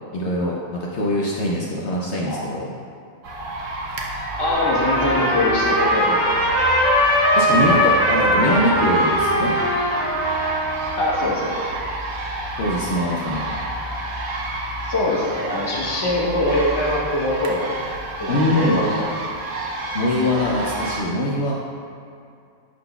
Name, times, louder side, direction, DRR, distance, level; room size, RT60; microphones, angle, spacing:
voice 1, 0.1-0.6 0.9-2.7 5.0-5.2 7.4-9.5 12.6-13.5 18.3-18.8 19.9-21.6, left 1 dB, 65° left, -3 dB, 0.8 m, -22 dB
sound 1, 3.2-21.0, right 1 dB, 70° right, 1.0 m, -29 dB
voice 2, 4.4-6.2 11.0-11.7 14.8-17.7 18.2-19.1, left 1 dB, 20° left, -4 dB, 0.8 m, -23 dB
Trumpet, 4.4-11.2, equal, 90° right, 2.0 m, -20 dB
11.0 x 3.9 x 2.3 m, 2.4 s
omnidirectional pair, 1.4 m